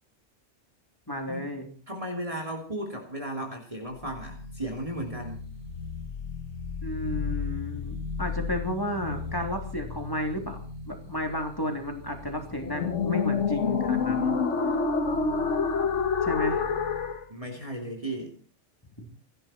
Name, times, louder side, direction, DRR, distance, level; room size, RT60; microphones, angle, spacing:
voice 1, 1.1-1.6 6.8-10.6 10.9-14.4 14.6-14.8 16.2-16.6 19.0-19.1, left 1 dB, 20° left, 3 dB, 3.4 m, -32 dB
voice 2, 1.9-5.5 17.3-18.3, right 1 dB, 30° right, 0 dB, 3.1 m, -35 dB
sound 1, 4.0-17.2, left 5 dB, 85° left, 1.7 m, -30 dB
28.5 x 11.5 x 4.4 m, 0.39 s
omnidirectional pair, 1.2 m